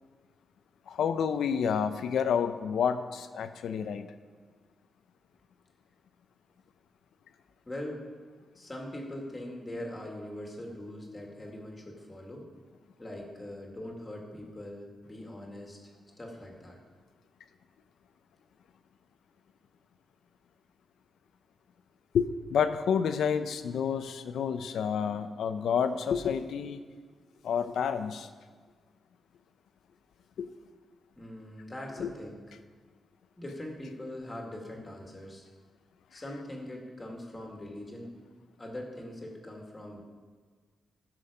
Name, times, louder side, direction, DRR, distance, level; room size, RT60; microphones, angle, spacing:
voice 1, 0.9-4.1 22.1-26.8 27.4-28.3 30.4-30.5 32.0-32.1, left 7 dB, 80° left, 10 dB, 0.7 m, -29 dB
voice 2, 7.7-8.0 8.5-12.5 13.0-15.8 16.2-16.8 31.2-32.4 33.4-35.4 36.1-38.2 38.6-40.0, left 1 dB, 20° left, 0 dB, 2.2 m, -42 dB
15.5 x 6.3 x 5.0 m, 1.5 s
cardioid pair, 115°, 0 cm